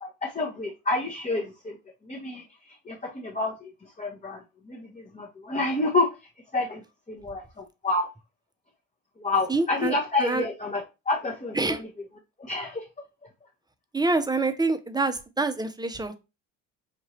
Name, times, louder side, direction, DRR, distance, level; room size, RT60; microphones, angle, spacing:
voice 1, 0.0-1.7 2.1-2.4 2.9-3.7 4.0-4.4 4.7-6.1 6.5-6.8 7.1-8.1 9.2-11.9 12.4-12.8, left 2 dB, 20° left, 1.0 m, -29 dB
voice 2, 9.5-10.4 11.6-11.8 13.9-16.2, right 3 dB, 10° right, 0.7 m, -26 dB
5.9 x 2.6 x 3.1 m
supercardioid pair, 70°, 41 cm